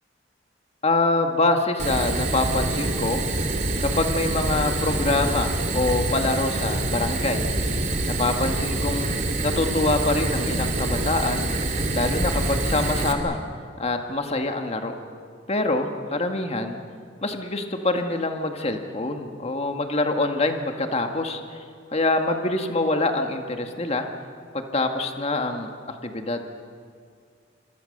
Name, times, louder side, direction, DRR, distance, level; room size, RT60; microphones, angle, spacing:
voice 1, 0.8-3.2 3.8-7.5 8.1-9.2 9.4-11.5 11.9-13.4 13.8-14.9 15.5-16.8 17.2-21.6 21.9-24.1 24.5-25.7 26.0-26.5, left 2 dB, 35° left, 5 dB, 1.9 m, -25 dB
Fire, 1.8-13.1, right 2 dB, 40° right, 2.8 m, -26 dB
27.0 x 25.5 x 6.7 m, 2.2 s
head